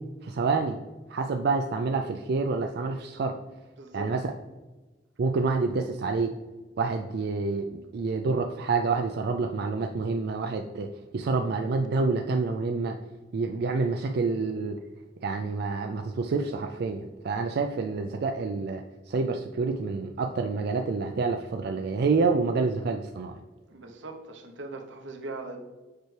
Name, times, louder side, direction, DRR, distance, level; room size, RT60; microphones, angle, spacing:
voice 1, 0.2-0.8 1.1-3.3 3.9-4.3 5.2-6.3 6.8-13.0 13.3-14.8 15.2-23.3, right 4 dB, 60° right, 4 dB, 0.4 m, -28 dB
voice 2, 3.8-4.1 23.7-25.6, right 2 dB, 85° right, 3 dB, 0.9 m, -40 dB
6.7 x 4.5 x 3.3 m, 1.2 s
head